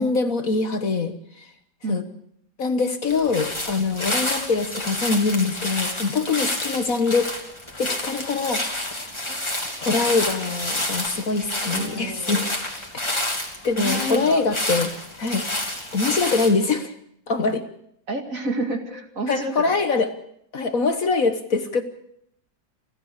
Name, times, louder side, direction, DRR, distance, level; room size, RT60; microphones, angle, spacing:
voice 1, 0.0-1.5 1.9-2.0 2.6-7.3 7.8-8.9 9.3-9.4 9.8-12.4 12.9-13.3 13.6-14.9 15.2-15.4 15.9-16.9 17.3-17.6 19.3-20.1 20.5-21.8, left 4 dB, 50° left, 9 dB, 1.6 m, -23 dB
sound 1, 3.1-16.5, left 1 dB, 15° left, 2.9 m, -29 dB
voice 2, 11.7-12.5 13.8-14.4 18.1-19.7, right 2 dB, 45° right, 5 dB, 2.7 m, -29 dB
29.5 x 13.5 x 6.6 m, 0.71 s
omnidirectional pair, 2.0 m